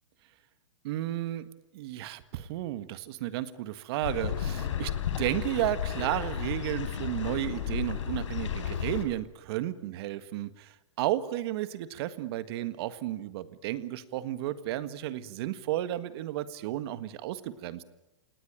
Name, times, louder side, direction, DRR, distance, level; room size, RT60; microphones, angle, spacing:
voice 1, 0.8-1.5 1.7-4.9 5.2-17.8, right 14 dB, 55° right, 13 dB, 1.7 m, -33 dB
sound 1, 4.0-9.1, left 8 dB, 75° left, 3.7 m, -33 dB
27.0 x 19.0 x 9.1 m, 0.96 s
hypercardioid pair, 125°, 16 cm